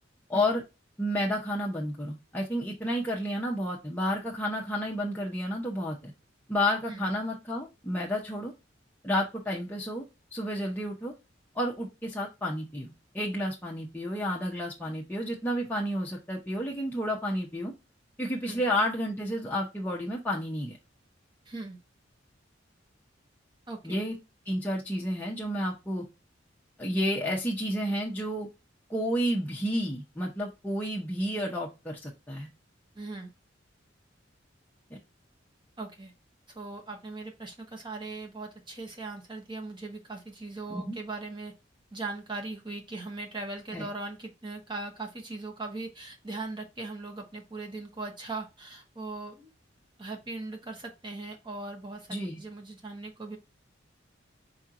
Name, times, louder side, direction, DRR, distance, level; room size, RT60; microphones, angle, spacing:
voice 1, 0.3-0.6 1.0-6.1 6.5-8.5 9.0-10.0 10.3-11.1 11.5-17.7 18.2-20.8 23.8-24.2 24.5-26.1 26.8-28.5 28.9-32.5 40.7-41.0 43.7-43.9 52.1-52.4, equal, 10° left, -3 dB, 0.7 m, -31 dB
voice 2, 21.5-21.8 23.7-24.0 33.0-33.3 35.8-36.1 36.5-41.5 41.9-49.5 50.0-53.4, right 3 dB, 25° right, 2 dB, 0.9 m, -39 dB
4.6 x 4.4 x 2.5 m, 0.26 s
head